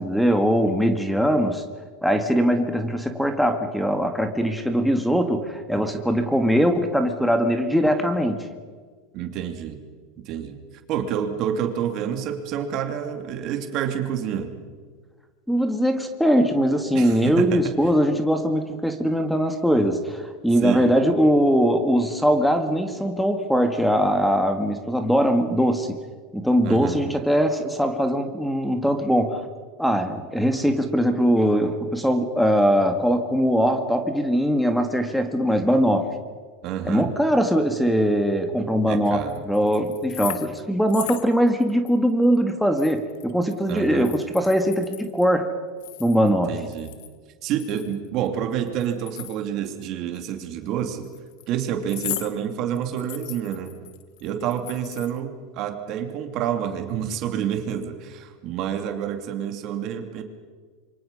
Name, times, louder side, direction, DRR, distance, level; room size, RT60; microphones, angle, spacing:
voice 1, 0.0-1.6 2.0-8.5 15.5-26.0 26.3-29.4 29.8-36.1 36.8-45.5 46.0-46.5, equal, ahead, 7 dB, 1.9 m, -21 dB
voice 2, 9.1-9.8 10.2-10.6 10.9-14.5 16.9-17.7 20.6-20.9 26.6-27.0 36.6-37.1 38.9-39.3 43.7-44.1 46.5-46.9 47.4-51.1 51.5-53.7 54.2-60.2, right 9 dB, 55° right, 5 dB, 3.0 m, -28 dB
sound 1, 39.2-40.6 40.9-41.9 42.2-42.4 42.8-45.3 45.8-47.1 47.5-49.8 50.1-50.3 51.0-51.4 51.9-52.3 52.8-55.2, left 15 dB, 70° left, 1.6 m, -37 dB
26.5 x 24.0 x 5.6 m, 1.5 s
supercardioid pair, 110°, 0 cm